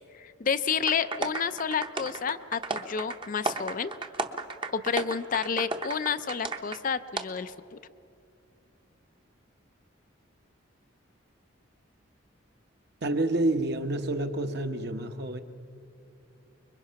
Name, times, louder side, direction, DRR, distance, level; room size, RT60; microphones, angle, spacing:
voice 1, 0.1-3.9 4.7-7.8, left 6 dB, 40° left, 12 dB, 0.4 m, -30 dB
sound 1, 0.9-6.8 7.2-7.3, right 3 dB, 25° right, 0.8 m, -34 dB
voice 2, 13.0-15.4, right 2 dB, 50° right, 7 dB, 1.1 m, -28 dB
25.5 x 22.0 x 5.8 m, 2.6 s
head